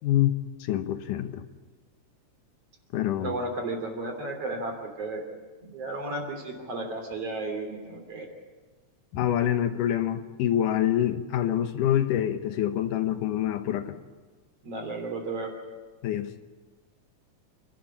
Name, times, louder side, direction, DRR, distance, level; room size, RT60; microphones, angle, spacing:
voice 1, 0.0-0.4 0.6-1.4 2.9-3.3 9.1-14.0 16.0-16.3, left 11 dB, 85° left, 9 dB, 2.7 m, -26 dB
voice 2, 3.2-5.2 5.6-8.3 14.6-15.5, right 2 dB, 50° right, 4 dB, 4.0 m, -33 dB
27.5 x 12.5 x 8.8 m, 1.4 s
omnidirectional pair, 3.6 m